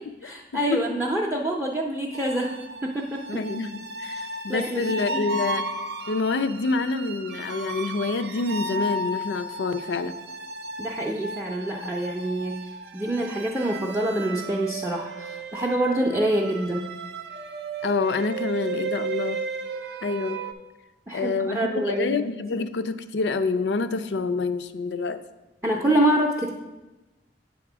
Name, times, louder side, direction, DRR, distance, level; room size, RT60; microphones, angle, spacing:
voice 1, 0.2-2.6 2.8-3.4 4.5-5.3 10.8-16.8 21.1-22.2 25.6-26.5, right 1 dB, 10° right, -1 dB, 0.5 m, -26 dB
sound 1, 2.1-20.5, right 3 dB, 70° right, 0.5 m, -34 dB
voice 2, 3.3-5.6 6.1-10.2 17.8-19.4 20.0-20.4 21.1-25.2, left 3 dB, 75° left, 11 dB, 0.4 m, -27 dB
8.1 x 3.6 x 6.0 m, 1.1 s
head